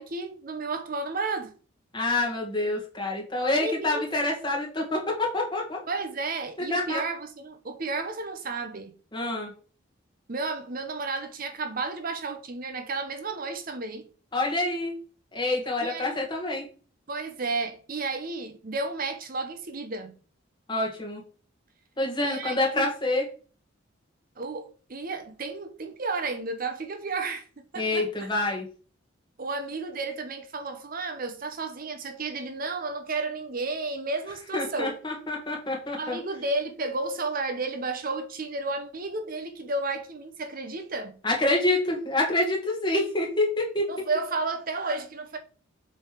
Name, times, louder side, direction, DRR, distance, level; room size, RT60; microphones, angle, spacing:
voice 1, 0.0-1.5 3.6-4.0 5.9-8.9 10.3-14.1 15.8-16.2 17.1-20.2 22.2-22.9 24.4-28.3 29.4-35.0 36.0-41.2 43.9-45.4, right 3 dB, 45° right, 0.7 m, -32 dB
voice 2, 1.9-5.8 6.7-7.0 9.1-9.5 14.3-14.9 15.3-16.6 20.7-21.2 22.0-23.2 27.8-28.7 34.5-36.2 41.2-43.9, left 2 dB, 25° left, 2.1 m, -27 dB
7.3 x 3.5 x 4.9 m
head